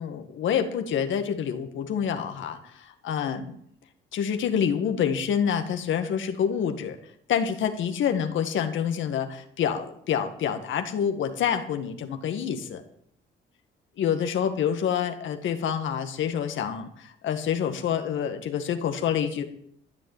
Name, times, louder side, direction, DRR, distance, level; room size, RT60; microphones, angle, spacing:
voice 1, 0.0-3.5 4.1-7.0 7.3-12.8 14.0-19.4, left 8 dB, 75° left, 7 dB, 1.7 m, -27 dB
14.0 x 6.6 x 9.1 m, 0.66 s
cardioid pair, 90°, 20 cm